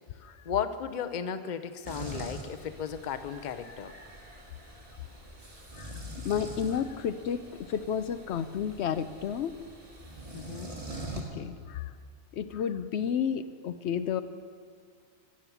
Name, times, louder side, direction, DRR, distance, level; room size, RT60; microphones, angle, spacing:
voice 1, 0.5-3.9 10.3-10.7, left 8 dB, 50° left, 11 dB, 0.8 m, -35 dB
sound 1, 1.8-11.2, right 1 dB, 30° right, 2.2 m, -44 dB
voice 2, 5.7-9.5 11.2-11.9 12.3-14.2, left 8 dB, 75° left, 11 dB, 0.9 m, -32 dB
18.0 x 7.4 x 8.3 m, 2.1 s
omnidirectional pair, 1.1 m